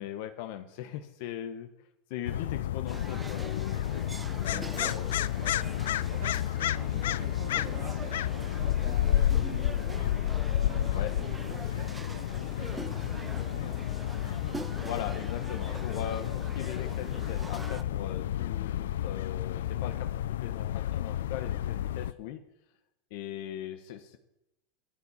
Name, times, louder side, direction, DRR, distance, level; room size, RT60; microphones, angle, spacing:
voice 1, 0.0-3.8 4.4-5.1 10.9-11.1 14.8-22.4 23.1-24.2, left 11 dB, 65° left, 7 dB, 1.1 m, -40 dB
sound 1, 2.2-22.1, left 12 dB, 85° left, 0.4 m, -31 dB
sound 2, 2.9-17.8, right 3 dB, 10° right, 0.6 m, -44 dB
voice 2, 4.4-4.9 5.4-5.5 5.9-10.1 10.5-13.8, right 7 dB, 60° right, 2 dB, 2.8 m, -47 dB
12.5 x 7.1 x 8.8 m, 0.90 s
supercardioid pair, 130°, 0 cm